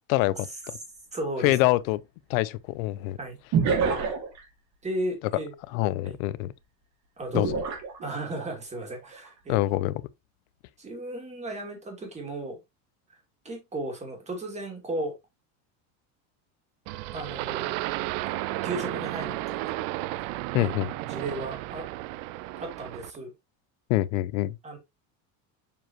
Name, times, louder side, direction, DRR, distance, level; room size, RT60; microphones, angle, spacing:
voice 1, 0.1-0.8 1.4-2.0 2.3-3.2 5.7-6.5 7.3-7.6 9.5-10.0 20.5-20.9 23.9-24.6, left 17 dB, 85° left, 0.7 m, -25 dB
sound 1, 0.6-0.7 3.5-4.4 7.3-8.5 9.0-9.3, right 6 dB, 40° right, 1.7 m, -27 dB
voice 2, 1.1-1.6 3.2-3.4 4.8-5.5 6.0-6.2 7.2-7.6 8.0-9.6 10.8-12.6 13.1-13.2 13.4-15.1 17.1-17.8 18.6-19.7 20.2-20.3 20.6-21.8 22.6-23.3 24.6-24.8, right 1 dB, 15° right, 2.3 m, -35 dB
sound 2, 16.9-23.2, right 17 dB, 70° right, 0.5 m, -33 dB
7.0 x 4.6 x 3.0 m
cardioid pair, 155°, 40 cm